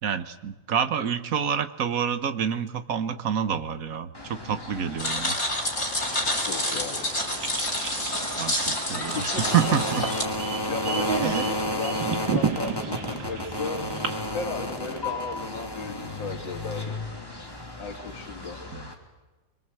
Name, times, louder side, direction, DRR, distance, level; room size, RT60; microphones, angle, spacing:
voice 1, 0.0-5.4 8.4-10.1 11.2-11.4 18.7-18.9, right 8 dB, 50° right, 11 dB, 1.4 m, -28 dB
sound 1, 4.1-18.9, left 1 dB, 10° left, 2.7 m, -33 dB
sound 2, 5.0-10.2, left 1 dB, 40° left, 3.8 m, -28 dB
sound 3, 6.0-14.2, right 6 dB, 70° right, 2.4 m, -33 dB
voice 2, 6.3-7.1 9.0-9.4 10.7-13.8 14.3-17.0 17.8-18.6, left 5 dB, 75° left, 2 dB, 2.7 m, -36 dB
26.0 x 22.5 x 7.7 m, 1.1 s
omnidirectional pair, 2.1 m